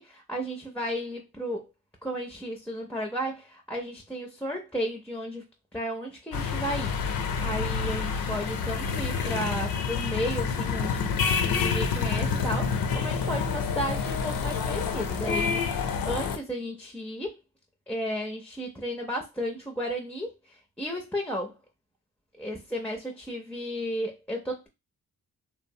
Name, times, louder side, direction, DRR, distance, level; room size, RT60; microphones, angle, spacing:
voice 1, 0.0-1.7 2.0-5.4 5.7-6.9 7.4-17.3 17.9-21.5 22.4-24.7, equal, 5° left, 0.4 m, -34 dB
sound 1, 6.3-16.4, left 5 dB, 70° left, 0.6 m, -28 dB
2.9 x 2.0 x 2.6 m
cardioid pair, 90°, 36 cm